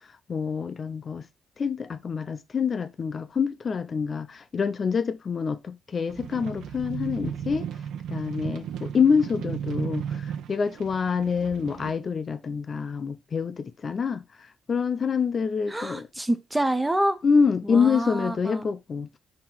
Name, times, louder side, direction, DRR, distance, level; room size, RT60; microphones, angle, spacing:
voice 1, 0.3-1.3 1.6-7.7 8.1-14.2 14.7-16.1 17.2-19.2, left 6 dB, 50° left, 0.4 m, -26 dB
sound 1, 6.1-11.9, right 8 dB, 85° right, 0.4 m, -34 dB
voice 2, 15.7-17.2 17.6-18.7, right 1 dB, 15° right, 0.6 m, -27 dB
3.8 x 2.9 x 4.4 m
supercardioid pair, 60°, 0 cm